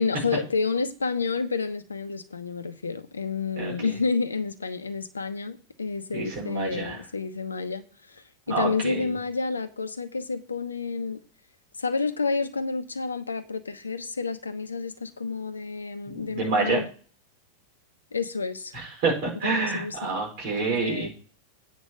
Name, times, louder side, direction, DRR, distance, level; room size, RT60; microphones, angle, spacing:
voice 1, 0.0-11.2 11.8-16.9 18.1-18.7 19.4-20.2 20.6-21.1, left 4 dB, 75° left, 1.0 m, -30 dB
voice 2, 3.6-3.9 6.1-7.0 8.5-9.1 16.1-16.8 18.7-21.1, right 4 dB, 45° right, 5.1 m, -28 dB
9.2 x 5.2 x 6.8 m
figure-of-eight pair, 90°, 0 cm